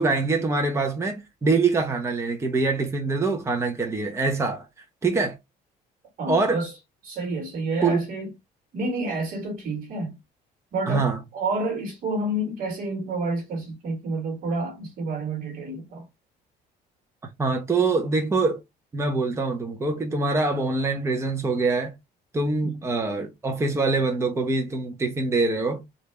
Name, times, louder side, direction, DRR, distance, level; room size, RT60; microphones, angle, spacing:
voice 1, 0.0-4.7 5.0-5.4 6.3-6.6 7.8-8.1 10.9-11.2 17.4-18.6 18.9-21.9 22.3-25.8, right 3 dB, 15° right, 0.8 m, -24 dB
voice 2, 6.2-6.7 7.0-8.3 8.7-10.2 10.7-11.1 11.3-16.1 22.6-22.7, right 2 dB, 60° right, 1.5 m, -29 dB
3.4 x 2.6 x 3.2 m
cardioid pair, 110°, 17 cm